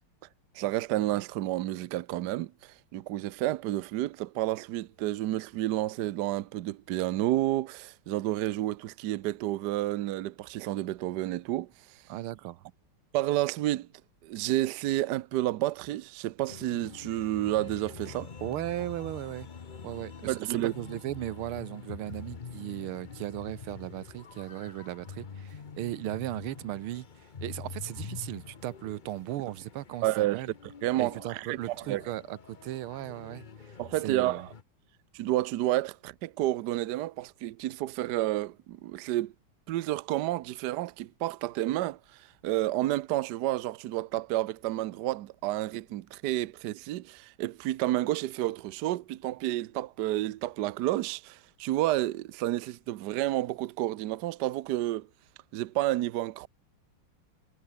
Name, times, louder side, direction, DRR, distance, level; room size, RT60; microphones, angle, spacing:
voice 1, 0.5-11.7 13.1-13.9 14.2-18.3 20.2-20.7 30.0-30.4 30.8-31.6 31.9-32.0 33.8-34.5 35.1-39.3 39.7-42.0 42.4-55.1 55.5-56.5, right 15 dB, 70° right, 1.1 m, -30 dB
voice 2, 12.1-12.6 18.4-19.5 19.8-27.1 27.4-30.5 31.0-33.7 34.0-34.5, right 14 dB, 85° right, 1.6 m, -37 dB
sound 1, 16.5-34.6, left 5 dB, 40° left, 0.7 m, -46 dB
omnidirectional pair, 2.3 m